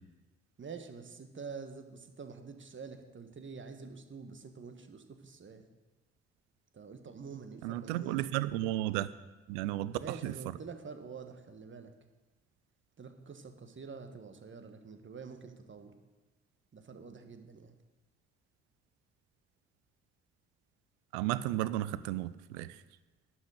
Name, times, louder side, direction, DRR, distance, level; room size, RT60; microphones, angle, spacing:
voice 1, 0.6-5.6 6.7-8.3 10.0-11.9 13.0-15.9 16.7-17.8, right 5 dB, 35° right, 7 dB, 1.4 m, -47 dB
voice 2, 7.6-9.1 9.5-10.3 21.1-22.8, right 15 dB, 75° right, 16 dB, 0.6 m, -33 dB
11.5 x 6.2 x 6.6 m, 1.2 s
hypercardioid pair, 45°, 34 cm